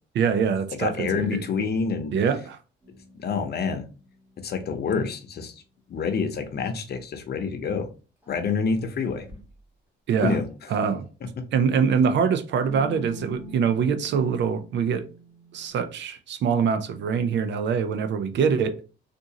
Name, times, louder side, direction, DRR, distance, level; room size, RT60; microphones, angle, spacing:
voice 1, 0.2-1.4 2.1-2.6 10.1-10.4 10.7-11.1 11.5-15.0 15.5-18.7, right 6 dB, 65° right, 0.5 m, -24 dB
voice 2, 0.7-2.1 3.2-3.9 4.4-5.5 5.9-7.9 8.3-9.3 10.2-10.4, left 5 dB, 55° left, 0.8 m, -27 dB
sound 1, 2.8-5.2 8.2-8.3 9.0-9.6 10.2-11.1 12.6-15.7, equal, 10° right, 1.4 m, -45 dB
3.7 x 2.5 x 2.8 m
cardioid pair, 90°, 20 cm